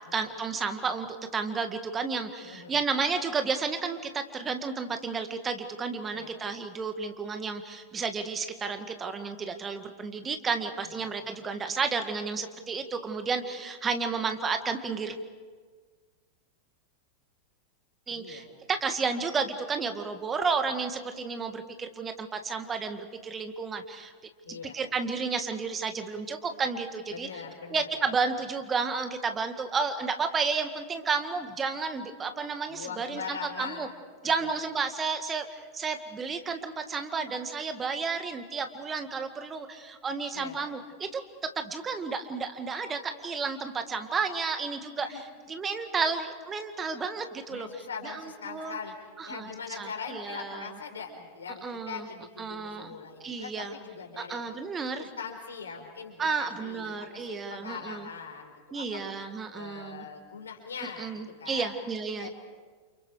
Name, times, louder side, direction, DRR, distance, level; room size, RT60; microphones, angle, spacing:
voice 1, 0.1-15.2 18.1-24.1 24.7-27.3 27.7-33.9 34.2-47.7 48.0-48.2 48.5-48.8 49.2-49.5 49.8-50.7 51.6-52.1 52.4-52.9 53.2-53.7 54.2-55.1 56.2-58.1 58.7-60.1 61.0-62.3, right 5 dB, 20° right, 7 dB, 1.9 m, -32 dB
voice 2, 2.4-2.8 6.1-6.3 10.8-11.1 18.1-18.5 24.4-24.8 27.1-28.1 32.7-33.9 34.2-34.5 40.3-40.6 45.0-45.2 47.5-48.9 49.2-54.4 54.9-59.1 59.5-61.7 62.2-62.3, left 6 dB, 70° left, 2 dB, 5.0 m, -41 dB
29.5 x 29.0 x 4.9 m, 1.5 s
figure-of-eight pair, 90°, 0 cm